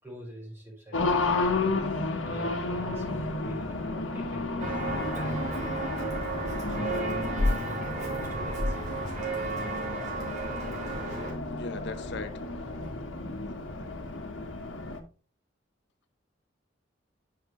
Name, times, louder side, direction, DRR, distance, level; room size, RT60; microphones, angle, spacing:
voice 1, 0.0-1.7 2.2-9.1, right 1 dB, 15° right, 4.6 m, -45 dB
Race car auto racing, 0.9-15.0, left 3 dB, 85° left, 1.2 m, -32 dB
Walk footsteps, 4.6-11.3, right 1 dB, 40° right, 3.5 m, -32 dB
voice 2, 11.5-12.4 13.5-13.6, left 3 dB, 65° left, 0.7 m, -39 dB
9.5 x 5.8 x 3.1 m
head